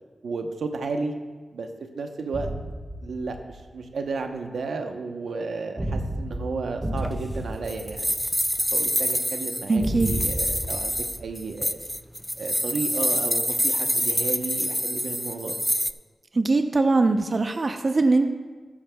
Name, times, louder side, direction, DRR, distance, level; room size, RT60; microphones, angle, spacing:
voice 1, 0.2-1.1 1.5-1.7 1.9-2.5 3.0-8.1 8.7-11.8 12.4-15.6, right 4 dB, 90° right, 4 dB, 0.9 m, -33 dB
sound 1, 2.3-3.7 5.8-8.7 9.8-12.0, right 1 dB, 30° right, 3.0 m, -32 dB
sound 2, 7.0-15.9, equal, ahead, 0.4 m, -26 dB
voice 2, 9.7-10.1 16.3-18.3, right 3 dB, 45° right, 6 dB, 0.7 m, -21 dB
14.5 x 13.0 x 2.3 m, 1.3 s
wide cardioid pair, 75°, 0 cm